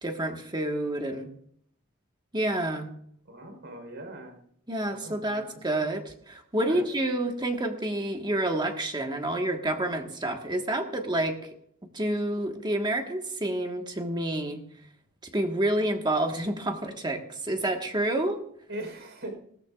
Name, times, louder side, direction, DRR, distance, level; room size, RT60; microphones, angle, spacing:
voice 1, 0.0-1.3 2.3-2.9 4.7-11.4 11.9-14.6 15.3-18.4, right 1 dB, 20° right, 3 dB, 1.4 m, -29 dB
voice 2, 3.3-4.4 4.9-5.5 5.8-5.9 6.7-6.9 18.7-19.4, right 1 dB, 55° right, 4 dB, 4.0 m, -40 dB
19.5 x 13.5 x 2.4 m, 0.65 s
head